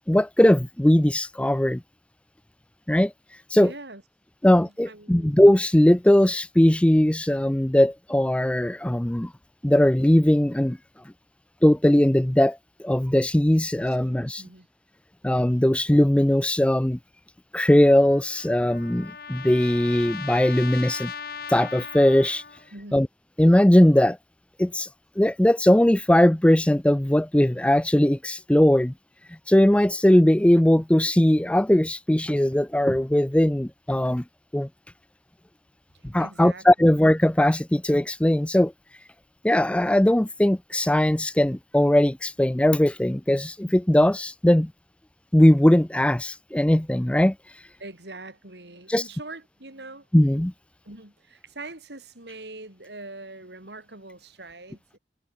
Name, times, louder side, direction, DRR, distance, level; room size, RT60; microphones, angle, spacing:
voice 1, 0.1-1.8 2.9-3.1 3.5-3.7 4.4-9.3 9.6-10.8 11.6-14.4 15.2-17.0 17.5-21.1 21.5-22.4 22.9-23.1 23.4-24.2 24.6-24.9 25.2-28.9 29.5-34.2 34.5-34.7 36.1-38.7 39.4-44.7 45.3-47.3 48.9-49.0 50.1-50.5, left 1 dB, 5° left, 0.5 m, -19 dB
voice 2, 3.5-4.0 4.4-5.3 13.9-14.7 22.7-23.0 36.2-36.9 47.8-50.1 50.8-55.0, right 2 dB, 70° right, 5.2 m, -43 dB
Trumpet, 17.9-22.7, left 6 dB, 60° left, 2.2 m, -38 dB
head